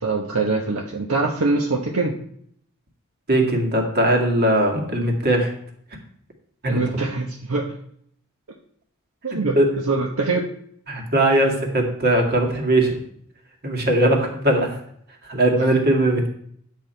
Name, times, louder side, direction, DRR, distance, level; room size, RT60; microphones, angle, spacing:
voice 1, 0.0-2.2 6.7-7.7 9.2-9.6 9.8-10.5, right 3 dB, 70° right, 1 dB, 1.1 m, -23 dB
voice 2, 3.3-5.5 6.6-6.8 9.6-9.7 10.9-13.0 13.6-14.8 15.2-16.3, right 1 dB, 45° right, 2 dB, 2.1 m, -19 dB
10.5 x 7.3 x 4.5 m, 0.65 s
head